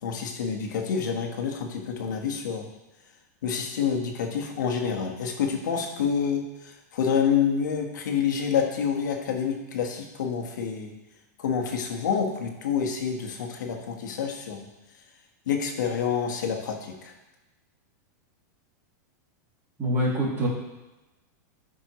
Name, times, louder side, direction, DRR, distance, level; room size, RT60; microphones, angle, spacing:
voice 1, 0.0-2.7 3.4-10.9 11.4-14.7 15.5-17.1, left 7 dB, 85° left, 2 dB, 1.5 m, -28 dB
voice 2, 19.8-20.5, equal, 25° right, -5 dB, 2.7 m, -25 dB
12.5 x 5.3 x 3.1 m, 1.0 s
supercardioid pair, 150°, 10 cm